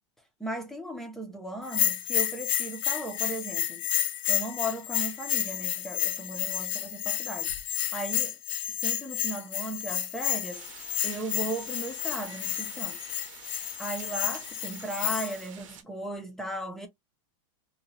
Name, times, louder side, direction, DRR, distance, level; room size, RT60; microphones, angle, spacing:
voice 1, 0.4-3.8 4.3-7.5 7.9-8.4 8.7-10.7 11.0-13.0 13.8-16.9, right 1 dB, ahead, 0.4 m, -36 dB
Bell, 1.7-15.4, left 12 dB, 85° left, 0.6 m, -31 dB
sound 1, 10.5-15.8, right 9 dB, 75° right, 0.7 m, -49 dB
2.8 x 2.1 x 2.6 m
supercardioid pair, 165°, 16 cm